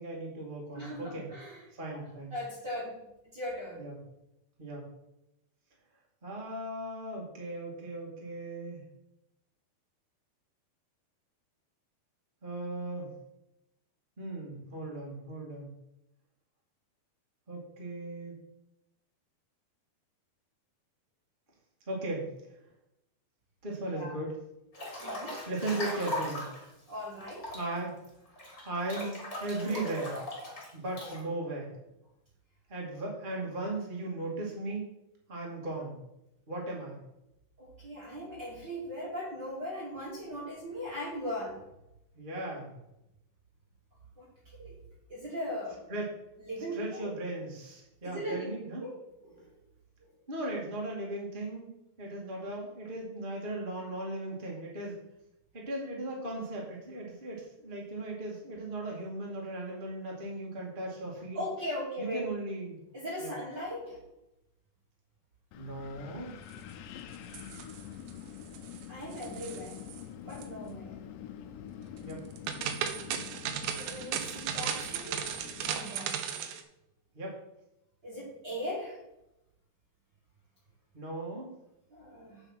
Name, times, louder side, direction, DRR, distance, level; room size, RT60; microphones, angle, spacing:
voice 1, 0.0-1.3 1.7-2.3 3.8-4.0 4.6-4.9 6.2-8.8 12.4-13.1 14.2-15.7 17.5-18.3 21.9-22.3 23.6-24.3 25.4-26.5 27.5-27.9 28.6-30.2 30.7-31.7 32.7-34.9 35.3-36.0 36.5-37.0 42.1-42.7 45.9-46.1 46.7-48.9 50.3-51.7 52.0-54.9 55.5-61.4 62.0-62.8 63.2-63.3 65.5-66.3 72.0-72.2 77.1-77.4 80.9-81.5, right 2 dB, 20° right, -3 dB, 1.6 m, -37 dB
voice 2, 0.7-1.6 1.9-2.0 2.3-3.0 3.2-3.8 23.9-24.2 25.0-25.4 26.9-27.6 37.6-41.6 44.2-44.3 44.6-44.7 45.1-45.8 46.5-47.1 48.0-48.4 48.8-48.9 49.2-49.4 61.3-62.2 62.9-64.0 68.9-69.8 70.2-71.0 73.8-75.3 75.7-76.2 78.0-79.0 81.9-82.4, equal, 35° right, -6 dB, 2.0 m, -39 dB
Breathing / Bathtub (filling or washing) / Splash splatter, 24.7-26.7 27.2-31.2, left 1 dB, 20° left, 2.9 m, -39 dB
Wind, 65.5-75.8, left 9 dB, 85° left, 2.9 m, -46 dB
sound 1, 67.1-68.1 68.4-68.8 69.1-70.0 70.3-70.4 72.1-76.6, right 8 dB, 85° right, 1.9 m, -36 dB
8.7 x 6.6 x 5.8 m, 0.88 s
omnidirectional pair, 5.0 m